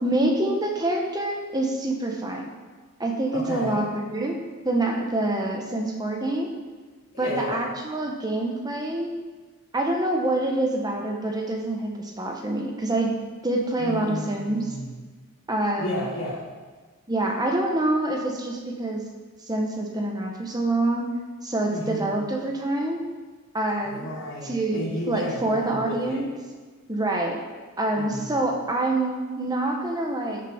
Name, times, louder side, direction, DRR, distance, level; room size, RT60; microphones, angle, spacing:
voice 1, 0.0-2.5 3.0-4.4 4.6-6.5 7.2-9.1 9.7-13.1 13.4-14.6 15.5-16.1 17.1-19.0 19.5-21.1 21.4-23.0 23.5-24.1 24.5-26.3 26.9-27.4 27.8-30.4, right 2 dB, 20° right, 1 dB, 1.2 m, -26 dB
voice 2, 3.3-3.8 7.1-7.6 13.8-15.0 15.8-16.5 21.7-22.2 23.8-26.3 27.9-28.4, equal, 70° left, -12 dB, 3.3 m, -33 dB
13.5 x 6.9 x 4.4 m, 1.4 s
head